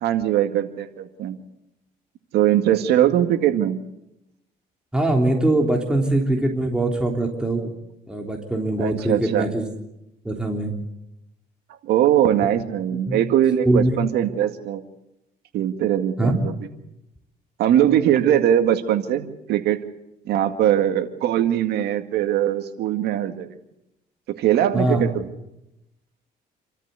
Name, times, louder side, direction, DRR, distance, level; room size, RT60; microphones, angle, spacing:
voice 1, 0.0-1.4 2.3-3.8 8.8-9.5 11.8-14.8 15.5-16.5 17.6-19.8 20.3-23.5 24.4-25.3, right 11 dB, 75° right, 7 dB, 2.1 m, -21 dB
voice 2, 4.9-7.7 8.1-9.6 10.2-10.7 12.4-12.5 13.1-13.2 13.7-13.9 16.2-16.3 24.7-25.1, right 1 dB, 5° right, 1 dB, 3.4 m, -22 dB
28.0 x 13.5 x 8.3 m, 0.87 s
cardioid pair, 110°, 17 cm